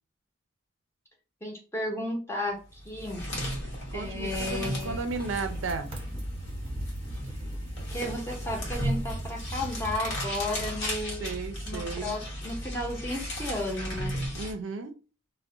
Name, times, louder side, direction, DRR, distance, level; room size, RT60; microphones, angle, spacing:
voice 1, 1.4-3.3 3.9-5.0 7.9-11.3 11.7-14.1, left 1 dB, 10° left, 0.7 m, -34 dB
sound 1, 2.7-14.5, equal, 60° left, 1.0 m, -35 dB
voice 2, 3.9-5.9 11.2-12.1 14.3-15.0, right 4 dB, 70° right, 0.4 m, -34 dB
sound 2, 4.8-10.1, right 1 dB, 25° right, 0.8 m, -40 dB
2.3 x 2.1 x 3.6 m
head